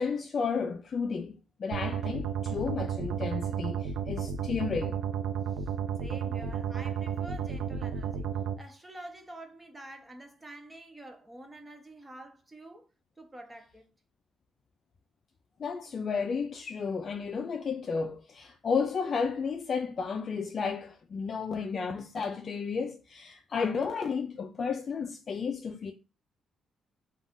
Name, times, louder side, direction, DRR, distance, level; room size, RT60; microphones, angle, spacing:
voice 1, 0.0-5.0 15.6-25.9, left 5 dB, 45° left, 0.3 m, -32 dB
sound 1, 1.7-8.5, right 7 dB, 85° right, 0.3 m, -32 dB
voice 2, 6.0-8.3 8.6-12.9 13.2-13.9, right 1 dB, 20° right, 0.7 m, -47 dB
2.4 x 2.4 x 3.5 m
cardioid pair, 90°, 0 cm